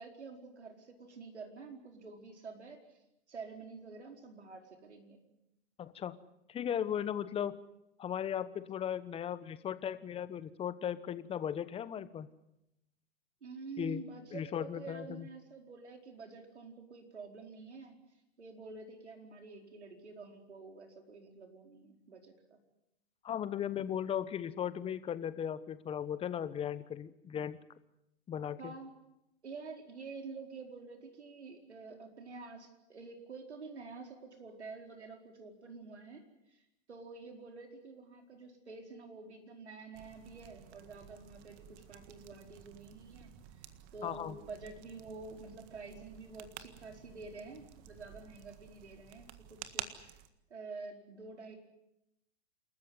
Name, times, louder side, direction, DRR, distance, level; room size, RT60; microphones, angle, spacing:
voice 1, 0.0-3.0 3.3-5.2 13.4-18.0 18.4-22.6 28.6-29.0 29.4-50.2 50.5-51.6, right 4 dB, 90° right, 4 dB, 4.6 m, -48 dB
voice 2, 5.8-6.2 6.5-7.6 8.0-12.3 13.8-14.0 14.3-15.3 23.2-27.6 28.3-28.7 44.0-44.4, left 9 dB, 15° left, 14 dB, 1.1 m, -37 dB
sound 1, 39.9-50.3, right 11 dB, 35° right, 1.7 m, -51 dB
28.5 x 14.0 x 9.6 m, 0.85 s
hypercardioid pair, 125°, 33 cm